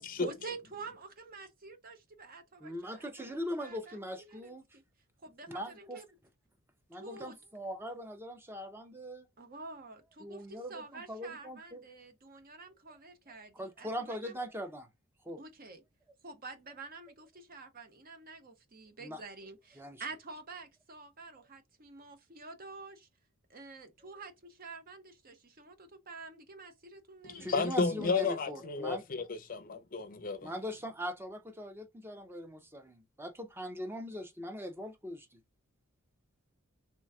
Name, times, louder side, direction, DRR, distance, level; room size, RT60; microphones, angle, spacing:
voice 1, 0.2-4.8 5.2-6.1 6.9-7.4 9.4-14.4 15.4-15.8 16.2-23.1 23.5-27.7, right 3 dB, 40° right, 0.8 m, -48 dB
voice 2, 2.6-4.6 5.5-6.0 6.9-9.3 10.2-11.8 13.5-14.9 15.2-15.4 19.0-19.2 19.8-20.0 27.4-29.0 30.4-35.4, equal, 10° right, 0.7 m, -41 dB
voice 3, 27.2-30.5, left 4 dB, 40° left, 0.5 m, -32 dB
3.2 x 3.1 x 3.5 m
head